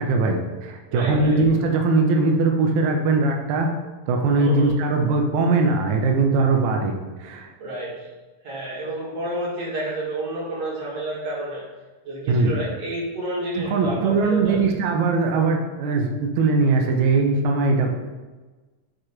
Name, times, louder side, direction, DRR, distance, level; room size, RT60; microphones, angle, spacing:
voice 1, 0.0-3.7 4.1-7.5 12.3-12.6 13.6-18.0, right 3 dB, 75° right, 2 dB, 2.0 m, -20 dB
voice 2, 0.9-1.4 4.4-4.8 7.6-8.1 8.4-11.7 12.1-14.6, right 1 dB, 55° right, -6 dB, 2.5 m, -30 dB
7.8 x 3.0 x 4.9 m, 1.2 s
omnidirectional pair, 3.5 m